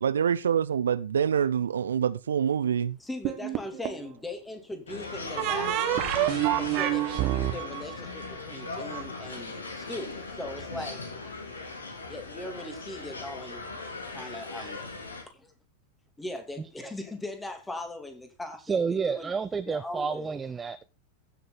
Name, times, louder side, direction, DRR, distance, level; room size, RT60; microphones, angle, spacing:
voice 1, 0.0-3.0, right 8 dB, 65° right, 0.5 m, -26 dB
voice 2, 3.0-6.0 6.5-11.0 12.1-13.6 14.1-14.8 16.2-19.3 19.7-20.4, left 1 dB, 10° left, 2.6 m, -39 dB
sound 1, 3.2-4.1 5.4-9.0, right 14 dB, 40° right, 1.5 m, -28 dB
sound 2, 4.9-15.2, left 3 dB, 75° left, 2.7 m, -38 dB
voice 3, 18.7-20.8, right 5 dB, 15° right, 0.6 m, -30 dB
15.5 x 6.6 x 4.1 m
figure-of-eight pair, 90°, 0 cm